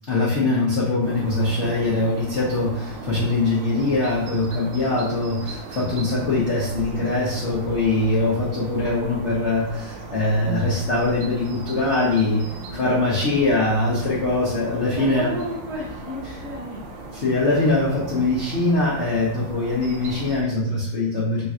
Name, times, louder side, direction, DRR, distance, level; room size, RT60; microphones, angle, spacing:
voice 1, 0.1-12.4 12.7-15.3 17.1-21.5, left 2 dB, 80° left, -6 dB, 0.6 m, -22 dB
sound 1, 1.0-20.4, right 2 dB, 75° right, 1.2 m, -37 dB
voice 2, 8.1-8.4 12.4-12.9 14.2-14.3 14.9-16.8, equal, 55° right, -4 dB, 1.5 m, -34 dB
3.8 x 2.4 x 4.1 m, 0.76 s
omnidirectional pair, 2.4 m